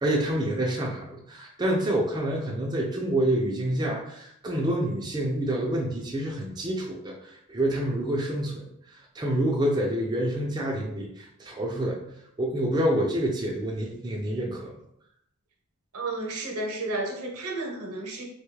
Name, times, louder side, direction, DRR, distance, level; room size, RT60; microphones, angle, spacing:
voice 1, 0.0-12.1 12.4-14.7, right 1 dB, 20° right, -2 dB, 0.4 m, -27 dB
voice 2, 15.9-18.2, right 2 dB, 75° right, 1 dB, 0.8 m, -32 dB
3.4 x 2.3 x 3.1 m, 0.74 s
head